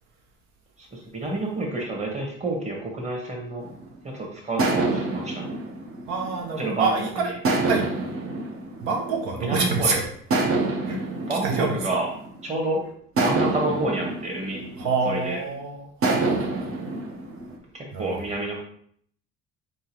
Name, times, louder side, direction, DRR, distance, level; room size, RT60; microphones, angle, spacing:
voice 1, 0.9-3.7 4.1-5.4 6.6-6.9 9.4-9.9 11.3-12.1 12.4-12.8 13.2-14.6 15.0-15.4 17.7-18.6, right 2 dB, 25° right, -1 dB, 1.3 m, -28 dB
sound 1, 3.7-4.0 4.6-6.8 7.4-9.7 10.3-12.5 13.2-15.4 16.0-17.6, right 2 dB, 50° right, 0.9 m, -27 dB
voice 2, 6.1-7.3 7.6-7.8 8.8-10.0 10.9-11.0 11.3-11.8 14.8-16.8 17.9-18.2, right 4 dB, 75° right, 1 dB, 0.8 m, -27 dB
3.9 x 3.6 x 2.9 m, 0.62 s
cardioid pair, 105°, 29 cm